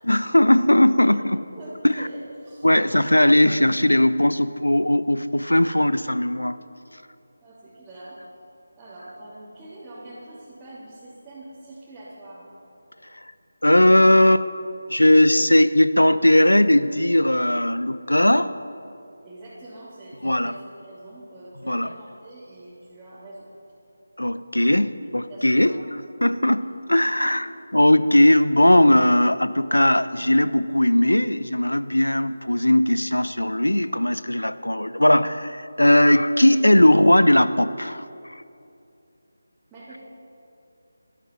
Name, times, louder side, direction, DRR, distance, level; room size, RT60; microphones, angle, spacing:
voice 1, 0.0-1.4 1.8-2.1 2.6-6.6 13.6-14.5 14.9-18.5 20.2-20.6 21.6-21.9 24.2-25.8 26.2-27.5 27.7-38.4, left 1 dB, 80° left, 14 dB, 0.8 m, -18 dB
voice 2, 1.5-3.4 7.4-8.2 8.8-12.5 19.2-23.5 25.3-25.9 27.2-27.3 39.7-40.0, right 1 dB, 10° right, -12 dB, 3.2 m, -43 dB
20.5 x 13.0 x 5.5 m, 2.6 s
figure-of-eight pair, 160°, 0 cm